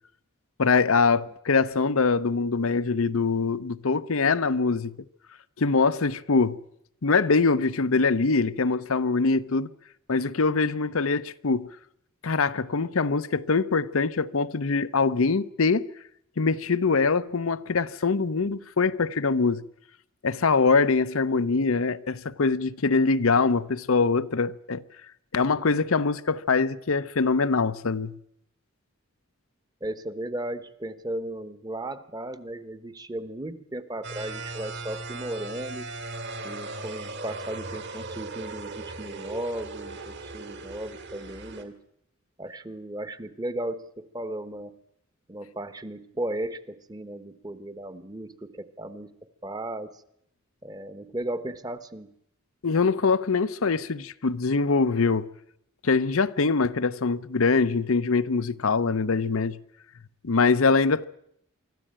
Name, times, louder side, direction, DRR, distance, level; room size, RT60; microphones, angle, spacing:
voice 1, 0.6-4.9 5.6-6.6 7.0-9.7 10.1-11.7 12.2-15.9 16.4-19.6 20.2-24.8 25.3-28.2 52.6-55.3 55.8-59.6 60.2-61.0, left 4 dB, 70° left, 0.7 m, -23 dB
voice 2, 29.8-35.8 36.4-41.8 42.4-44.8 45.3-49.1 49.4-50.0 50.6-52.1, right 1 dB, 20° right, 1.1 m, -35 dB
sound 1, 34.0-41.6, right 3 dB, 55° right, 2.4 m, -38 dB
24.5 x 14.0 x 8.8 m
head